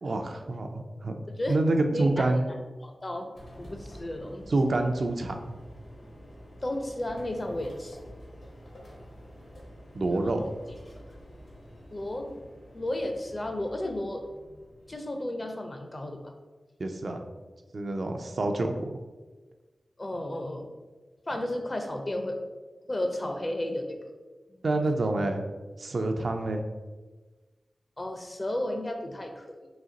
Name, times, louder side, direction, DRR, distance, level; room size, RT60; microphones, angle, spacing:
voice 1, 0.0-1.2 1.5-2.5 4.5-5.6 9.9-10.4 16.8-17.2 17.7-18.9 24.6-25.4 25.8-26.6, right 2 dB, 65° right, 4 dB, 0.4 m, -27 dB
voice 2, 1.3-1.6 1.9-2.3 2.8-4.5 6.6-8.1 10.1-10.5 11.0-11.1 11.9-12.4 12.7-14.3 14.9-16.3 20.0-20.7 21.3-22.4 22.9-24.0 24.5-24.9 28.0-29.7, left 1 dB, 35° left, 4 dB, 0.5 m, -33 dB
sound 1, 3.3-15.0, equal, 70° left, 1.1 m, -48 dB
4.1 x 2.8 x 3.8 m, 1.3 s
wide cardioid pair, 85°, 0 cm